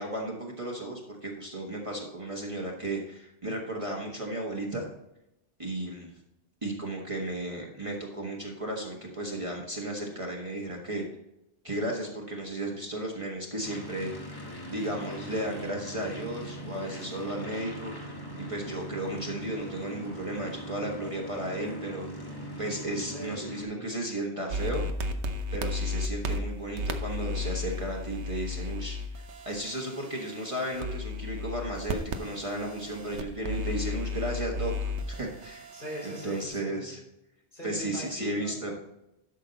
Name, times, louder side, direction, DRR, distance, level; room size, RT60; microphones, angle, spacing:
voice 1, 0.0-4.9 5.6-6.1 6.6-11.0 11.6-17.9 18.4-24.9 25.5-35.7 36.0-37.0 37.6-38.7, right 1 dB, 30° right, -1 dB, 1.4 m, -34 dB
sound 1, 13.6-23.6, equal, 20° left, 1.5 m, -41 dB
voice 2, 23.1-24.1 35.7-36.9 37.5-38.7, equal, 45° left, -4 dB, 4.7 m, -41 dB
sound 2, 24.5-36.5, left 2 dB, 85° right, 1.1 m, -34 dB
12.0 x 6.4 x 4.0 m, 0.86 s
omnidirectional pair, 1.1 m